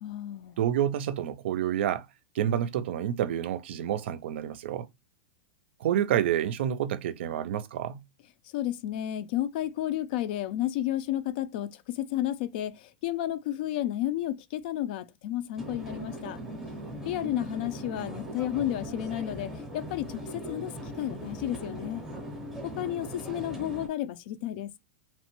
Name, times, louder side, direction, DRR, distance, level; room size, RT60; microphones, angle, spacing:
voice 1, 0.0-0.6 8.5-16.4 17.0-20.7 21.0-22.0 22.6-24.7, left 13 dB, 55° left, 0.4 m, -32 dB
voice 2, 0.6-2.1 2.3-4.9 5.8-8.0, right 10 dB, 75° right, 0.4 m, -28 dB
sound 1, 15.6-23.9, right 1 dB, 5° right, 0.6 m, -39 dB
3.0 x 2.1 x 2.9 m
supercardioid pair, 160°, 6 cm